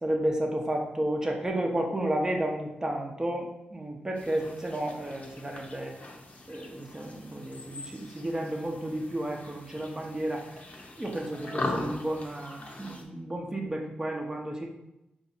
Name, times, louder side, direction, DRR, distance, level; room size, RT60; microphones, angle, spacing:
voice 1, 0.0-6.0 6.5-10.6 10.9-14.7, right 1 dB, 15° right, 0 dB, 0.8 m, -32 dB
sound 1, 4.2-13.0, left 2 dB, 45° left, 0.9 m, -40 dB
4.6 x 2.7 x 4.1 m, 0.89 s
cardioid pair, 75°, 3 cm